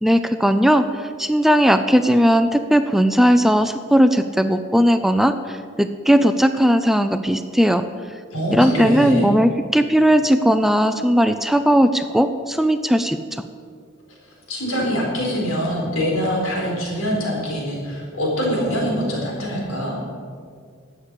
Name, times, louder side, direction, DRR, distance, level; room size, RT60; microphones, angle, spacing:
voice 1, 0.0-7.8 8.5-13.4, equal, ahead, 9 dB, 0.4 m, -17 dB
voice 2, 8.3-9.3 14.5-20.0, equal, 90° left, -2 dB, 4.4 m, -24 dB
12.5 x 8.5 x 8.1 m, 2.1 s
head